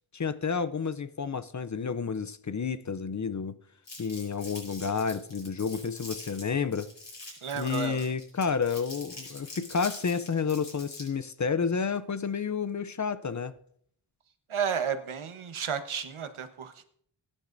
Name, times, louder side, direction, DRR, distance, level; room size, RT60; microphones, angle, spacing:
voice 1, 0.1-3.6 4.0-6.9 7.5-13.5, left 5 dB, 40° left, 0.5 m, -30 dB
Crumpling crinkling, 3.9-11.2, left 2 dB, 60° left, 6.5 m, -44 dB
voice 2, 7.4-8.1 14.5-16.8, right 7 dB, 80° right, 1.2 m, -32 dB
22.5 x 10.0 x 2.6 m
wide cardioid pair, 105°, 48 cm